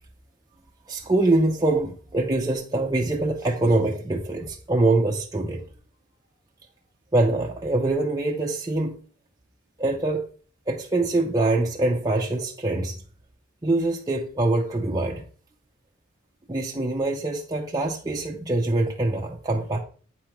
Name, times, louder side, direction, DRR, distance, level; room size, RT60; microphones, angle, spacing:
voice 1, 0.9-5.6 7.1-9.0 9.8-10.2 10.7-13.0 13.6-15.2 16.5-19.8, right 2 dB, 20° right, 0.6 m, -24 dB
8.5 x 5.0 x 3.0 m
head